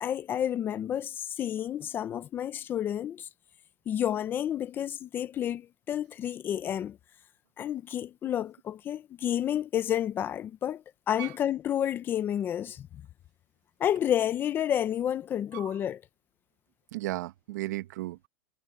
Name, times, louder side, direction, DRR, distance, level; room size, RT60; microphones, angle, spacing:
voice 1, 0.0-3.3 3.9-7.0 7.6-12.9 13.8-16.0, left 10 dB, 20° left, 0.6 m, -30 dB
voice 2, 16.9-18.3, right 17 dB, 65° right, 1.4 m, -35 dB
supercardioid pair, 160°, 10 cm